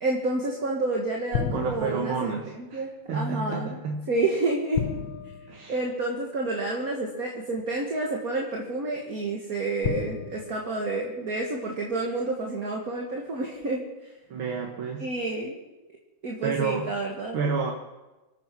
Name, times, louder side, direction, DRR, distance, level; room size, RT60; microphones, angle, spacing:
voice 1, 0.0-3.8 4.1-4.8 5.7-13.8 15.0-15.6 16.2-17.4, right 2 dB, 45° right, 0 dB, 2.1 m, -29 dB
sound 1, 1.3-2.3 4.7-6.4 7.6-7.7 9.8-11.6, left 7 dB, 85° left, 1.7 m, -33 dB
voice 2, 1.5-2.8 3.1-4.1 5.5-5.8 14.3-15.1 16.4-16.9 17.3-17.7, right 5 dB, 80° right, 1 dB, 2.3 m, -30 dB
25.5 x 9.1 x 6.1 m, 1.1 s
omnidirectional pair, 2.2 m